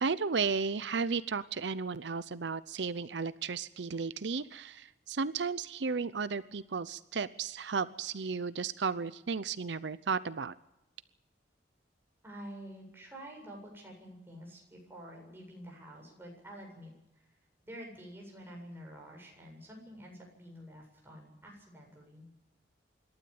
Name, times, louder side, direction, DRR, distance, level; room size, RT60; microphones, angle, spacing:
voice 1, 0.0-10.5, right 5 dB, 80° right, 15 dB, 0.7 m, -34 dB
voice 2, 12.2-17.3 17.6-22.3, equal, 15° right, -1 dB, 7.8 m, -49 dB
26.5 x 12.5 x 8.7 m, 0.86 s
head